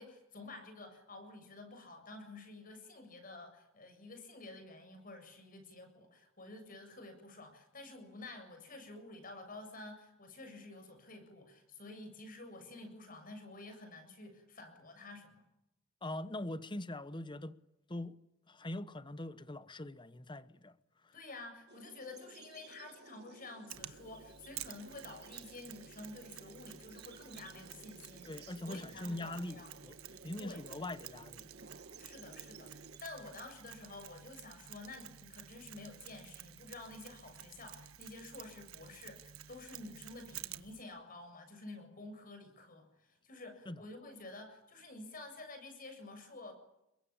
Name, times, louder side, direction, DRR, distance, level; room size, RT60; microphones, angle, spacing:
voice 1, 0.0-15.4 21.1-29.7 30.1-30.6 32.0-46.5, left 2 dB, 40° left, 7.3 m, -50 dB
voice 2, 16.0-17.6 17.9-18.1 18.5-20.7 28.2-29.6 29.8-29.9 30.2-31.5 43.7-43.8, left 1 dB, 20° left, 1.0 m, -42 dB
sound 1, 21.7-33.0, right 3 dB, 50° right, 1.8 m, -57 dB
Mechanisms, 23.7-40.8, right 11 dB, 85° right, 1.4 m, -52 dB
29.5 x 22.5 x 8.9 m
head